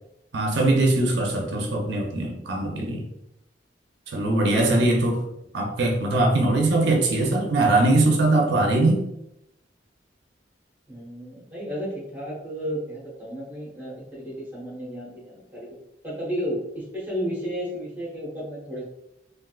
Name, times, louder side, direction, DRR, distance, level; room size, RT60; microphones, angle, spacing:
voice 1, 0.3-3.1 4.1-5.2 5.5-9.0, right 2 dB, 80° right, 0 dB, 0.6 m, -21 dB
voice 2, 10.9-15.8 16.0-18.8, equal, 10° right, -5 dB, 1.1 m, -33 dB
3.6 x 2.5 x 2.3 m, 0.84 s
head